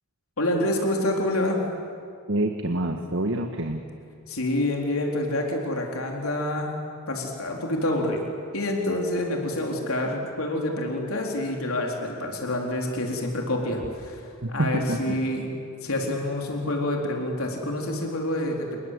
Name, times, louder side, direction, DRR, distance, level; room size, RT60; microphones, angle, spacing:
voice 1, 0.4-1.6 4.3-6.7 7.1-8.2 8.5-14.2 14.5-15.5 15.8-18.8, left 1 dB, 85° left, 1 dB, 3.9 m, -27 dB
voice 2, 2.3-3.9 14.4-15.2, right 1 dB, 65° right, 5 dB, 1.5 m, -27 dB
28.5 x 21.5 x 8.3 m, 2.4 s
head